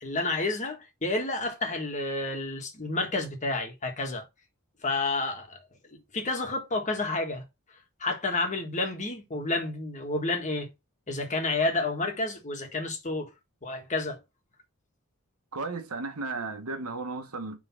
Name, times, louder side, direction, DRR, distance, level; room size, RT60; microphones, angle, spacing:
voice 1, 0.0-4.2 4.8-5.6 5.9-7.4 8.0-10.7 11.1-13.3 13.6-14.2, left 2 dB, 35° left, 1.6 m, -30 dB
voice 2, 15.5-17.6, right 3 dB, 90° right, 1.3 m, -34 dB
5.7 x 3.7 x 5.7 m
head